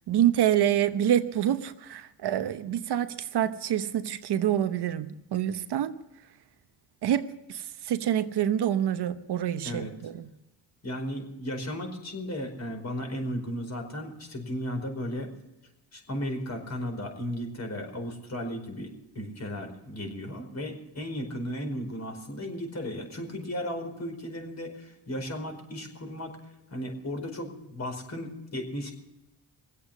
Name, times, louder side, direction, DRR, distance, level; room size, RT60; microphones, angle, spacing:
voice 1, 0.1-6.0 7.0-10.3, right 11 dB, 65° right, 1.0 m, -27 dB
voice 2, 10.8-15.3 15.9-26.4 26.7-28.9, equal, 40° left, 4.9 m, -35 dB
22.0 x 8.3 x 7.2 m
cardioid pair, 90°, 43 cm